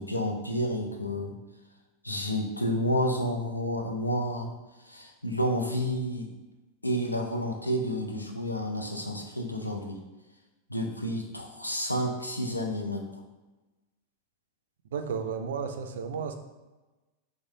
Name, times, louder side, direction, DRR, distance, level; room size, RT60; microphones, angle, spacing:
voice 1, 0.0-1.3 2.0-4.5 4.8-6.3 6.8-10.0 10.7-13.2, equal, 85° left, 2 dB, 0.5 m, -30 dB
voice 2, 14.9-16.4, right 6 dB, 60° right, 7 dB, 0.4 m, -33 dB
4.7 x 2.1 x 3.7 m, 1.1 s
figure-of-eight pair, 90°, 0 cm